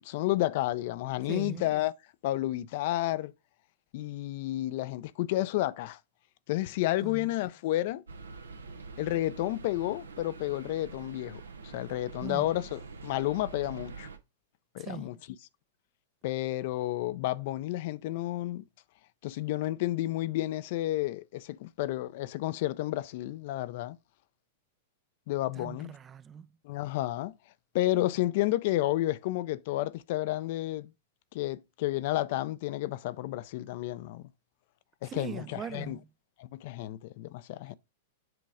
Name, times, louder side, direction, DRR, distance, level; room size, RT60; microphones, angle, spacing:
voice 1, 0.0-1.9 2.2-3.3 3.9-6.0 6.5-8.0 9.0-14.1 14.7-15.1 16.2-18.6 19.2-24.0 25.3-25.9 26.6-27.3 27.7-30.9 31.3-34.2 35.0-36.0 36.4-37.7, left 16 dB, 55° left, 0.4 m, -31 dB
voice 2, 1.3-1.7 7.0-7.3 12.2-12.5 14.8-15.2 25.5-26.6 35.0-36.0, right 7 dB, 25° right, 0.4 m, -41 dB
sound 1, 8.1-14.2, right 4 dB, 85° right, 0.8 m, -45 dB
7.8 x 3.0 x 4.8 m
hypercardioid pair, 105°, 0 cm